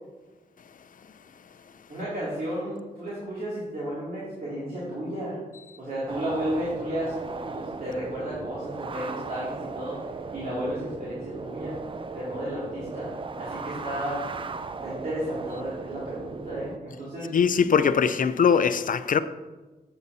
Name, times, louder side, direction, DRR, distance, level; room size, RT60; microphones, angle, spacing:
voice 1, 1.9-5.4 5.8-10.0 10.3-11.8 12.1-13.1 13.4-14.3 14.8-17.3, equal, 60° right, 2.4 m, -33 dB
sound 1, 6.1-16.8, right 4 dB, 30° right, 0.3 m, -37 dB
voice 2, 17.3-19.2, left 6 dB, 55° left, 0.4 m, -21 dB
8.2 x 6.9 x 2.7 m
wide cardioid pair, 85°, 17 cm